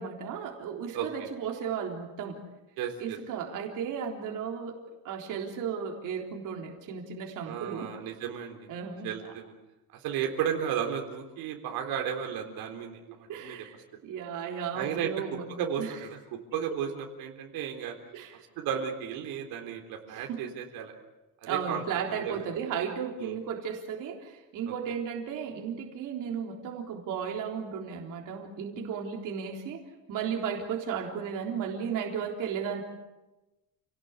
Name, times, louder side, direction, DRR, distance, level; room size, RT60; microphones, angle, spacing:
voice 1, 0.0-2.4 3.0-4.8 5.0-7.9 8.7-9.3 13.3-13.7 14.0-15.5 15.8-15.9 18.1-18.4 20.1-20.5 21.5-29.8 30.1-32.8, right 7 dB, 60° right, 1 dB, 3.8 m, -34 dB
voice 2, 0.9-1.3 2.8-3.2 7.5-8.6 9.0-9.5 9.9-13.6 14.7-15.1 15.5-16.2 16.5-17.9 18.6-20.9 21.4-22.4 23.2-23.4, right 8 dB, 90° right, 3 dB, 3.8 m, -34 dB
29.0 x 18.0 x 8.3 m, 1.0 s
cardioid pair, 175°, 35 cm